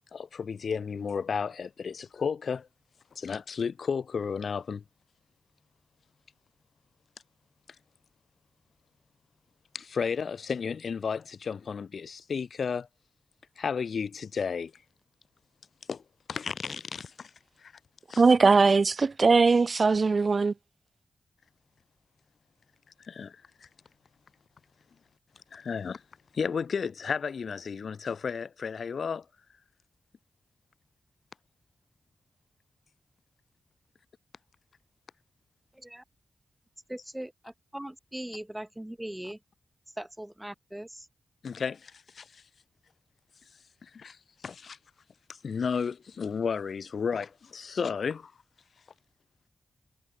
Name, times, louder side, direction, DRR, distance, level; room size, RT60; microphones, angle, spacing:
voice 1, 0.1-2.7 3.2-4.8 9.7-12.9 13.6-14.8 15.9-16.0 16.3-17.3 17.6-17.7 18.1-18.2 23.0-23.7 25.5-26.0 26.3-29.3 41.4-42.4 43.8-44.8 45.3-48.3, left 6 dB, 70° left, 1.9 m, -33 dB
voice 2, 18.2-20.5, right 4 dB, 55° right, 0.4 m, -20 dB
voice 3, 35.7-36.0 36.9-39.4 39.9-41.1, right 1 dB, 10° right, 2.2 m, -40 dB
cardioid pair, 45°, 0 cm